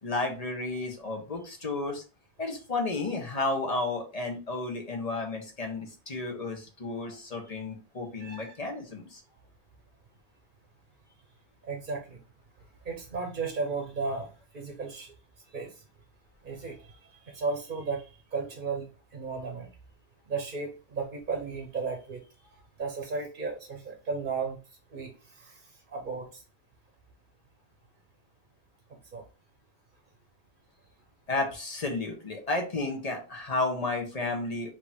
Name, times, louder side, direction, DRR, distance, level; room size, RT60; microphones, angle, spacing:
voice 1, 0.0-2.0 2.4-9.2 31.3-34.7, left 2 dB, 40° left, 2 dB, 1.3 m, -32 dB
voice 2, 8.2-8.5 11.7-12.2 12.8-15.1 15.5-15.8 16.4-19.7 20.3-24.6 24.9-26.4 29.1-29.2, right 4 dB, 55° right, 2 dB, 1.0 m, -35 dB
5.0 x 2.9 x 3.5 m, 0.33 s
omnidirectional pair, 1.0 m